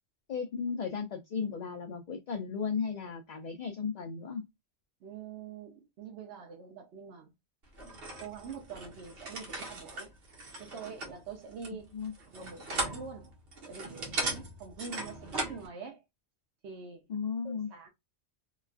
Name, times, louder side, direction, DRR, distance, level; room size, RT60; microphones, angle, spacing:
voice 1, 0.3-4.4 11.9-12.1 17.1-17.7, left 6 dB, 55° left, 0.5 m, -35 dB
voice 2, 5.0-7.3 8.2-10.1 10.6-11.9 12.2-13.4 13.6-16.0 16.6-17.0 17.4-17.9, right 6 dB, 85° right, 1.0 m, -45 dB
sound 1, 7.7-15.7, right 2 dB, 60° right, 1.1 m, -38 dB
2.9 x 2.3 x 2.4 m
omnidirectional pair, 1.1 m